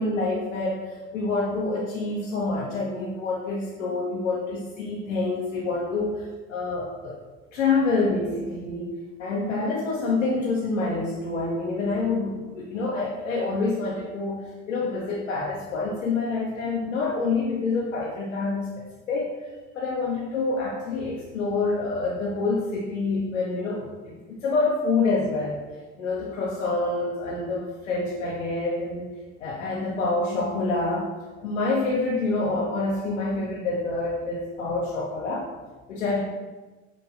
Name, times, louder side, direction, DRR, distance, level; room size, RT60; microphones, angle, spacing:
voice 1, 0.0-7.2 7.5-8.9 9.2-19.3 19.7-25.6 26.0-29.1 29.4-31.1 31.4-35.5 35.9-36.2, left 3 dB, 80° left, -5 dB, 0.7 m, -27 dB
6.0 x 2.2 x 2.5 m, 1.2 s
figure-of-eight pair, 65°, 37 cm